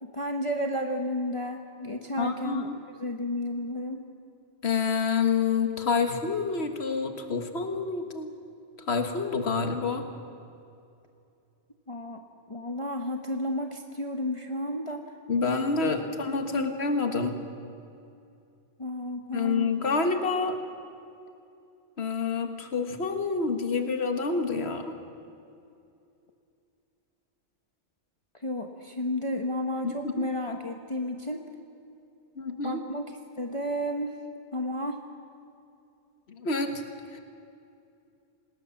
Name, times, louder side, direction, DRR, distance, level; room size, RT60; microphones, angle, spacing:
voice 1, 0.0-2.7 3.0-4.0 11.9-15.1 16.5-16.9 18.8-19.8 28.4-31.4 32.6-33.1 33.4-34.1 34.5-35.0, left 1 dB, 30° left, 3 dB, 1.2 m, -32 dB
voice 2, 2.2-2.8 4.6-8.3 8.9-10.1 15.3-17.4 19.3-20.6 22.0-25.0 29.8-30.3 32.4-32.8 36.3-36.8 37.1-37.2, left 4 dB, 65° left, 6 dB, 1.8 m, -28 dB
26.5 x 20.0 x 7.2 m, 2.6 s
omnidirectional pair, 1.2 m